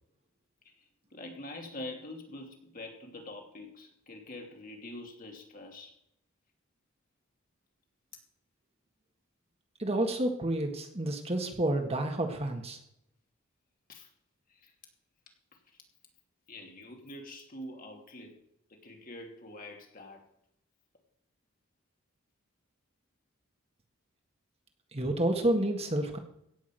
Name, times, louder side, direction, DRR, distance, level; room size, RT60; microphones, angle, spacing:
voice 1, 1.1-5.9 13.9-14.1 14.6-14.7 16.5-18.4 18.7-20.2, left 1 dB, 45° left, 2 dB, 2.9 m, -45 dB
voice 2, 9.8-12.8 24.9-26.2, right 1 dB, 30° right, 5 dB, 1.7 m, -29 dB
17.0 x 6.2 x 7.6 m, 0.76 s
head